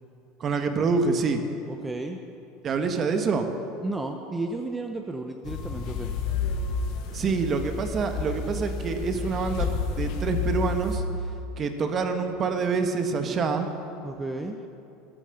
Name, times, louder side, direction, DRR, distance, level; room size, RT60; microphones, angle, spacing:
voice 1, 0.4-1.4 2.6-3.5 7.1-11.0 11.6-13.7, right 4 dB, 35° right, 7 dB, 1.3 m, -26 dB
voice 2, 1.7-2.2 3.8-6.1 14.0-14.6, right 2 dB, 15° right, 4 dB, 0.8 m, -33 dB
sound 1, 5.4-11.0, left 4 dB, 65° left, 1.8 m, -30 dB
13.0 x 10.0 x 6.6 m, 2.8 s
supercardioid pair, 105°, 0 cm